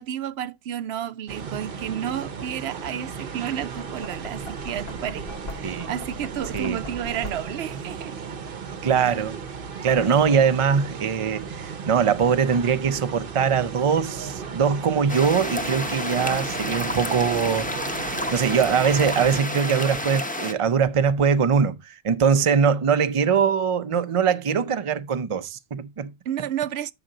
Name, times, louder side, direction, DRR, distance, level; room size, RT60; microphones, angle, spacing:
voice 1, 0.0-8.1 26.3-26.9, right 10 dB, 85° right, 0.9 m, -31 dB
sound 1, 1.3-19.4, right 6 dB, 60° right, 1.0 m, -36 dB
Knock, 3.7-7.8, left 2 dB, 70° left, 1.2 m, -41 dB
voice 2, 5.6-5.9 6.5-6.8 8.8-9.4 9.8-17.7 18.3-26.1, right 6 dB, 40° right, 0.6 m, -22 dB
sound 2, 15.1-20.5, left 1 dB, 10° left, 0.7 m, -30 dB
8.7 x 5.9 x 3.8 m
omnidirectional pair, 1.0 m